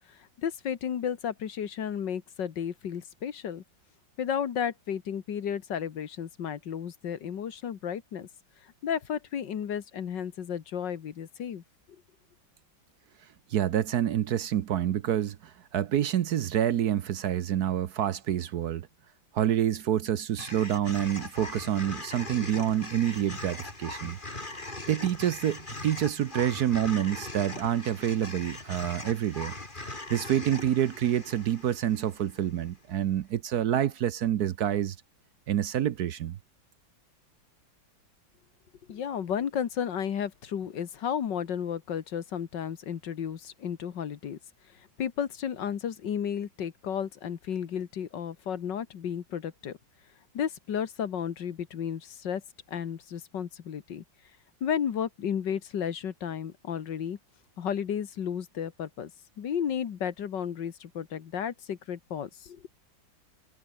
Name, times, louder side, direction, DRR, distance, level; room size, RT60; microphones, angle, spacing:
voice 1, 0.1-3.6 4.2-8.3 8.8-11.6 38.9-44.4 45.0-49.8 50.3-52.4 52.7-54.0 54.6-57.2 57.6-59.1 59.4-62.7, left 8 dB, 70° left, 2.0 m, -33 dB
voice 2, 13.5-18.9 19.3-24.2 24.9-29.5 29.8-35.0 35.5-36.4, right 11 dB, 60° right, 1.2 m, -27 dB
sound 1, 20.4-32.7, left 2 dB, 25° left, 3.8 m, -40 dB
omnidirectional pair, 2.1 m